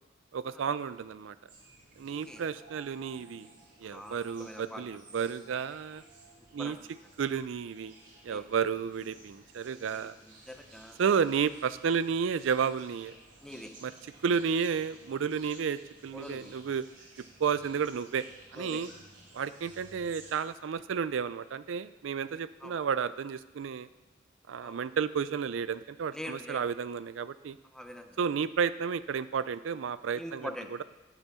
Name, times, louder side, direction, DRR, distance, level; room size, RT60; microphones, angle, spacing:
voice 1, 0.3-1.4 2.0-3.5 3.8-6.0 6.5-6.8 7.2-7.9 8.2-10.2 11.0-13.1 13.8-13.9 14.2-16.9 17.4-18.2 18.5-18.9 19.3-23.9 24.5-27.6 28.2-30.5, right 6 dB, 90° right, 15 dB, 0.4 m, -32 dB
sound 1, 1.5-20.4, right 2 dB, 70° right, 4.1 m, -56 dB
sound 2, 2.1-9.9, right 2 dB, 40° right, 2.8 m, -61 dB
voice 2, 3.8-4.8 6.6-6.9 8.3-8.5 9.9-10.1 10.5-11.0 13.4-13.7 16.1-16.6 18.5-18.8 22.6-22.8 24.6-24.8 26.1-26.7 27.7-28.2 30.1-30.7, equal, 5° left, 5 dB, 0.8 m, -44 dB
11.0 x 8.0 x 5.5 m, 1.0 s
head